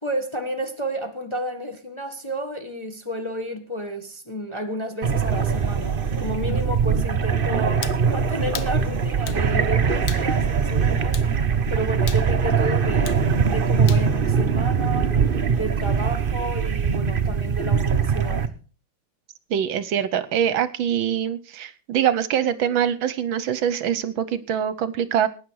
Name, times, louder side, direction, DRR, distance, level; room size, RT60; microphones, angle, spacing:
voice 1, 0.0-11.2 11.7-15.2 15.5-18.5, right 1 dB, 15° left, 1.2 m, -31 dB
sound 1, 5.0-18.5, right 6 dB, 55° right, 0.6 m, -22 dB
sound 2, 7.8-8.0 8.5-8.8 9.3-9.4 10.1-10.3 11.1-11.3 12.1-12.3 13.1-13.2 13.9-14.1, left 9 dB, 60° left, 1.3 m, -35 dB
voice 2, 19.5-25.3, right 9 dB, 70° right, 1.5 m, -24 dB
18.5 x 9.5 x 4.7 m
omnidirectional pair, 2.4 m